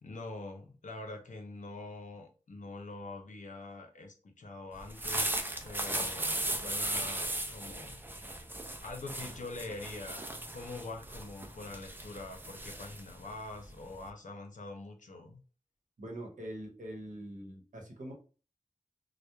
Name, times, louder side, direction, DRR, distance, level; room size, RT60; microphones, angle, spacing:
voice 1, 0.0-8.0 8.8-15.4, left 2 dB, 70° left, 3 dB, 0.6 m, -44 dB
sound 1, 4.8-14.1, right 1 dB, 15° right, 0.5 m, -37 dB
voice 2, 16.0-18.1, right 1 dB, 75° right, 0 dB, 0.9 m, -43 dB
2.9 x 2.1 x 2.2 m, 0.36 s
wide cardioid pair, 55°, 13 cm